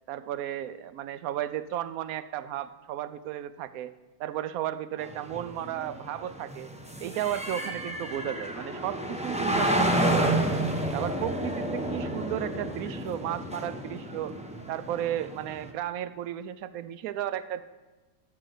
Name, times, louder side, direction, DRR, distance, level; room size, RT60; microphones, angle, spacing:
voice 1, 0.1-3.9 4.2-6.7 7.0-10.5 10.9-14.4 14.7-17.6, right 11 dB, 70° right, 13 dB, 0.9 m, -34 dB
sound 1, 5.0-15.7, right 1 dB, 10° right, 0.4 m, -30 dB
13.0 x 6.2 x 6.6 m, 1.2 s
omnidirectional pair, 1.9 m